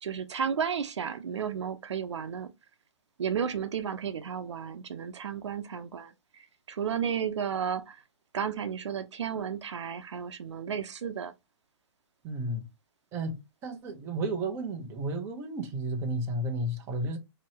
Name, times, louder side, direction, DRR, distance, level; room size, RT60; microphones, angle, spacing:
voice 1, 0.0-2.5 3.2-6.1 6.7-8.0 8.3-11.3, right 7 dB, 80° right, 0.7 m, -33 dB
voice 2, 12.2-12.7 13.1-13.4 13.6-17.2, right 1 dB, 15° right, 0.8 m, -32 dB
4.4 x 2.9 x 2.9 m
hypercardioid pair, 165°, 15 cm